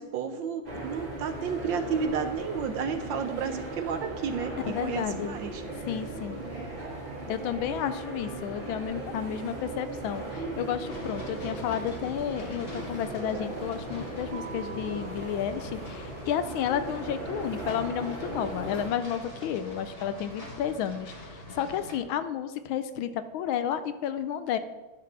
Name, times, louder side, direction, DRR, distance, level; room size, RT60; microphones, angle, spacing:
voice 1, 0.0-5.9, right 6 dB, 70° right, 8 dB, 1.3 m, -32 dB
sound 1, 0.6-18.9, right 2 dB, 25° right, 1.8 m, -38 dB
voice 2, 4.6-5.4 5.9-6.4 7.3-24.6, left 9 dB, 75° left, 11 dB, 1.3 m, -32 dB
sound 2, 10.8-22.0, left 1 dB, 30° left, 1.6 m, -44 dB
Keyboard (musical), 14.3-16.9, right 5 dB, 90° right, 1.8 m, -48 dB
10.5 x 4.8 x 6.0 m, 1.1 s
omnidirectional pair, 2.3 m